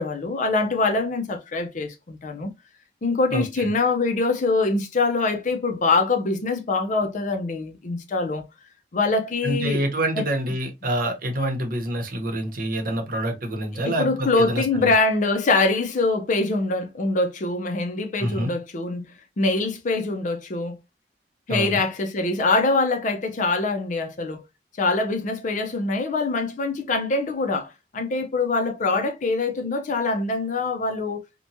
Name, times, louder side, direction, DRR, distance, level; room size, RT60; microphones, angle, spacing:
voice 1, 0.0-2.5 3.0-8.4 8.9-9.8 10.2-10.3 13.8-19.1 19.4-20.8 21.5-24.4 24.8-31.2, left 3 dB, 45° left, 0.5 m, -24 dB
voice 2, 3.3-3.7 9.4-14.6 18.2-18.5 21.5-21.8, right 1 dB, 55° right, 0.8 m, -26 dB
2.9 x 2.2 x 2.6 m
head